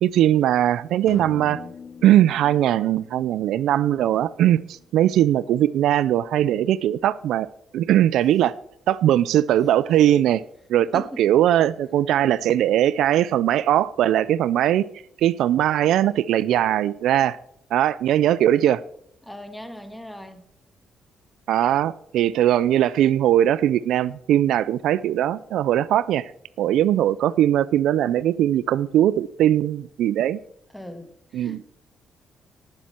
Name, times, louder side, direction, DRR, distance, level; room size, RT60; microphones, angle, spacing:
voice 1, 0.0-1.6 2.0-7.5 7.7-8.5 8.9-10.4 10.7-14.9 15.2-17.4 17.7-18.8 21.5-26.3 26.6-30.4 31.3-31.6, right 12 dB, 80° right, 0.4 m, -20 dB
sound 1, 1.1-4.9, left 6 dB, 50° left, 0.9 m, -43 dB
voice 2, 10.9-11.3 19.2-20.5 30.7-31.6, equal, 5° left, 1.7 m, -39 dB
18.5 x 7.4 x 4.4 m
cardioid pair, 90°, 0 cm